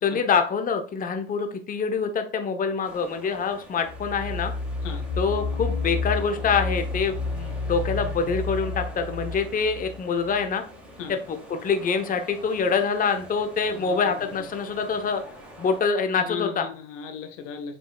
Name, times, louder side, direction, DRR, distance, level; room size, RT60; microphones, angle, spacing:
voice 1, 0.0-4.5 5.2-10.6 11.1-15.2 15.6-16.7, left 5 dB, 20° left, 7 dB, 0.9 m, -25 dB
sound 1, 2.8-15.8, equal, 5° right, 2.6 m, -45 dB
sound 2, 3.9-10.5, left 4 dB, 60° left, 1.7 m, -30 dB
voice 2, 13.7-14.4 16.2-17.8, left 7 dB, 80° left, 6 dB, 1.6 m, -36 dB
7.4 x 5.4 x 2.3 m, 0.43 s
supercardioid pair, 105°, 37 cm